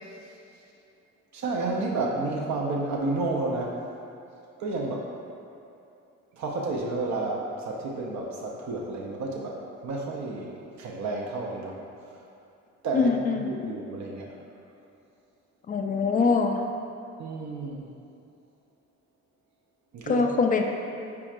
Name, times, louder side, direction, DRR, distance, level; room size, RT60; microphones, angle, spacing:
voice 1, 1.3-3.8 4.6-5.1 6.3-11.8 12.8-13.1 13.5-14.4 17.2-17.9 19.9-20.2, right 3 dB, 65° right, -2 dB, 0.7 m, -31 dB
voice 2, 12.9-13.7 15.7-16.6 20.1-20.6, left 4 dB, 30° left, 4 dB, 0.4 m, -24 dB
4.7 x 4.3 x 2.4 m, 2.7 s
cardioid pair, 90°, 30 cm